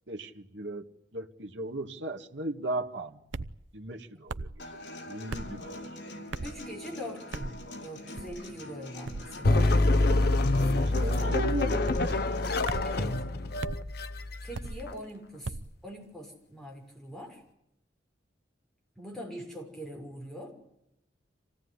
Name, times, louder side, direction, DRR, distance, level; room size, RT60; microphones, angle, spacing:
voice 1, 0.1-0.8 1.1-3.2 3.7-5.7 11.0-11.8, right 2 dB, 70° right, 2 dB, 1.9 m, -36 dB
sound 1, 3.3-3.6 4.3-4.6 5.3-5.5 6.3-6.6 7.3-7.6 8.2-8.5 9.1-9.3 10.0-10.3 10.9-11.3 11.9-12.1 12.7-13.0 13.6-13.8 14.5-14.8 15.4-15.7, right 3 dB, 90° right, 0.8 m, -37 dB
Human voice / Acoustic guitar, 4.6-12.6, left 1 dB, 75° left, 5.3 m, -43 dB
voice 2, 6.4-9.7 11.1-11.6 12.8-13.2 14.4-15.6 15.8-17.4 19.0-20.5, equal, ahead, 0 dB, 5.9 m, -43 dB
sound 2, 9.4-14.9, left 2 dB, 55° left, 1.0 m, -26 dB
26.5 x 17.5 x 9.7 m, 0.83 s
head